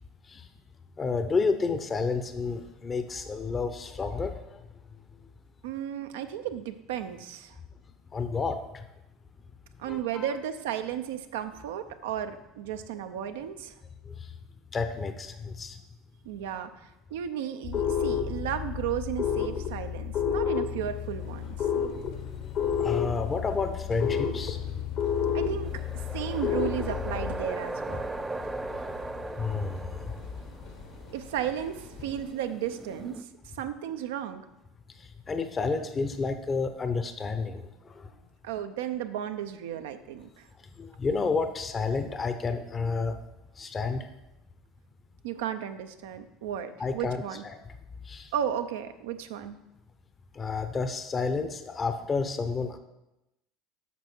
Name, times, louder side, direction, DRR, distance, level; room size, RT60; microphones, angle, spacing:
voice 1, 1.0-4.6 8.1-8.8 9.9-10.3 14.1-14.2 14.7-15.8 21.9-22.0 22.4-22.5 22.8-24.6 27.9-28.0 28.8-29.0 29.4-30.1 35.0-38.1 40.8-43.2 43.6-44.1 46.8-47.6 48.1-48.3 50.3-52.8, left 4 dB, 30° left, 8 dB, 0.7 m, -30 dB
voice 2, 5.6-7.5 9.8-13.7 16.2-21.5 25.3-25.8 26.1-28.1 31.1-33.3 33.5-34.4 38.4-40.5 45.2-47.4 48.3-49.6, right 10 dB, 75° right, 9 dB, 0.6 m, -34 dB
sound 1, 17.6-27.4, left 8 dB, 55° left, 1.1 m, -30 dB
sound 2, 20.8-32.3, left 3 dB, 70° left, 1.6 m, -47 dB
sound 3, 25.6-33.2, right 2 dB, 15° right, 0.4 m, -38 dB
8.3 x 6.2 x 4.5 m, 0.94 s
hypercardioid pair, 75°, 0 cm